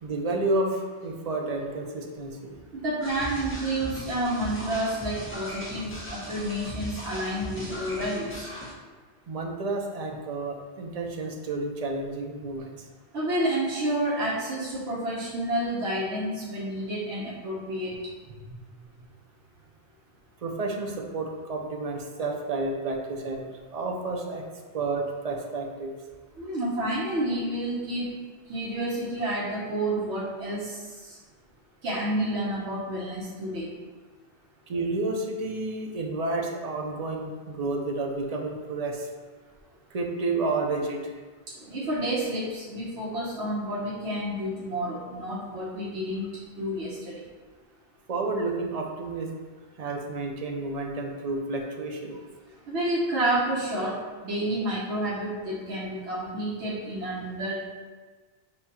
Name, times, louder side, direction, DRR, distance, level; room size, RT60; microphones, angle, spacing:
voice 1, 0.0-2.6 9.3-12.7 18.5-18.6 20.4-24.4 24.7-25.9 34.7-39.1 39.9-41.1 48.1-49.3 49.8-52.2, right 2 dB, 50° right, 1 dB, 0.5 m, -30 dB
voice 2, 2.7-8.5 13.1-18.0 26.4-28.1 28.5-31.2 31.8-33.7 41.6-46.3 46.6-47.2 52.7-57.7, right 1 dB, 90° right, -6 dB, 1.1 m, -30 dB
sound 1, 3.0-8.7, equal, 15° left, 0.6 m, -38 dB
6.7 x 2.3 x 2.8 m, 1.4 s
omnidirectional pair, 1.1 m